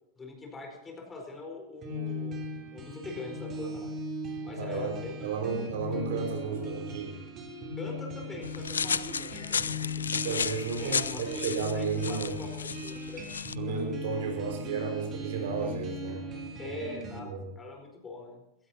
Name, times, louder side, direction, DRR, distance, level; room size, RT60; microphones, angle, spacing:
voice 1, 0.2-2.4 2.7-3.9 4.4-5.3 7.8-10.0 10.8-13.3 13.6-13.8 16.6-18.7, left 2 dB, 15° left, 1 dB, 4.6 m, -43 dB
sound 1, 1.8-17.2, left 1 dB, 30° right, 3.3 m, -38 dB
voice 2, 4.5-4.9 5.2-7.2 10.1-12.3 13.5-16.8 17.2-17.4, right 5 dB, 55° right, 1 dB, 5.5 m, -33 dB
sound 2, 8.4-13.5, left 6 dB, 70° left, 0.5 m, -33 dB
21.5 x 18.0 x 2.9 m, 0.89 s
figure-of-eight pair, 90°, 0 cm